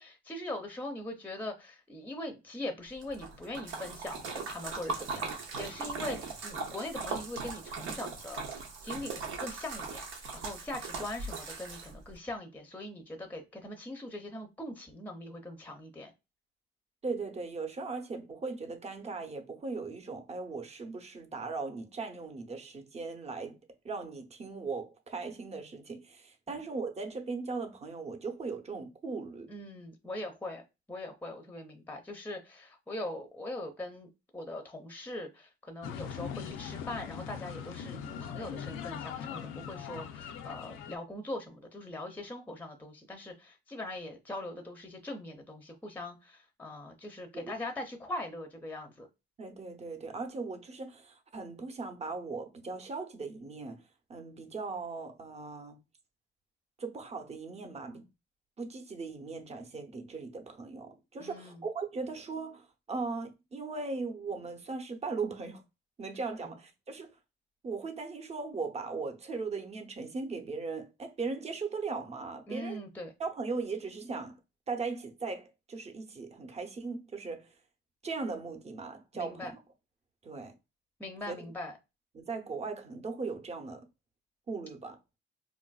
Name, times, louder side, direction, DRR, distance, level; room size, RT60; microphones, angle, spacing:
voice 1, 0.0-16.1 26.5-26.6 29.5-30.6 30.9-49.1 61.2-61.6 66.4-66.5 72.5-73.1 79.1-79.5 81.0-81.7, left 1 dB, 10° left, 0.6 m, -41 dB
Splash splatter, 3.0-12.1, right 4 dB, 90° right, 0.7 m, -39 dB
voice 2, 17.0-23.6 23.8-29.5 47.3-47.5 49.4-53.8 54.1-55.8 56.8-58.1 58.6-65.6 66.0-67.1 67.6-72.8 73.2-74.3 74.7-77.5 78.0-79.6 80.2-80.5 81.2-81.4 82.1-83.8 84.5-85.0, right 4 dB, 35° right, 0.7 m, -38 dB
sound 1, 35.8-41.0, left 8 dB, 80° left, 0.4 m, -41 dB
3.8 x 2.5 x 2.3 m
cardioid pair, 90°, 20 cm